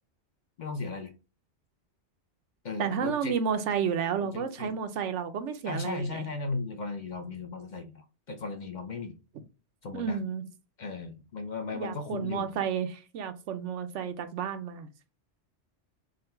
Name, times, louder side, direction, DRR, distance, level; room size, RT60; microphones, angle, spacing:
voice 1, 0.6-1.1 2.6-3.3 4.2-4.7 5.6-9.2 9.8-10.2 10.8-12.5, left 3 dB, 50° left, 0.6 m, -36 dB
voice 2, 2.8-6.3 9.9-10.5 11.7-14.9, right 7 dB, 85° right, 1.0 m, -31 dB
3.7 x 2.2 x 4.3 m
omnidirectional pair, 1.2 m